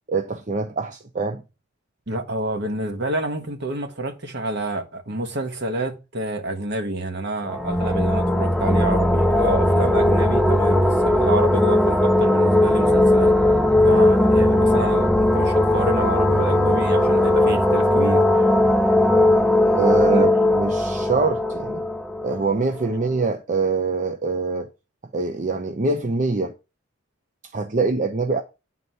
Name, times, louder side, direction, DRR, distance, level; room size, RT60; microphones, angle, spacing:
voice 1, 0.1-1.4 18.1-18.2 19.7-21.8 22.2-24.7 25.1-26.5 27.5-28.4, right 4 dB, 40° right, 0.7 m, -24 dB
voice 2, 2.1-13.3 13.8-18.2 20.1-20.3, right 1 dB, 60° right, 1.4 m, -28 dB
sound 1, 7.5-23.0, left 1 dB, 5° left, 0.4 m, -18 dB
9.4 x 4.1 x 5.6 m
head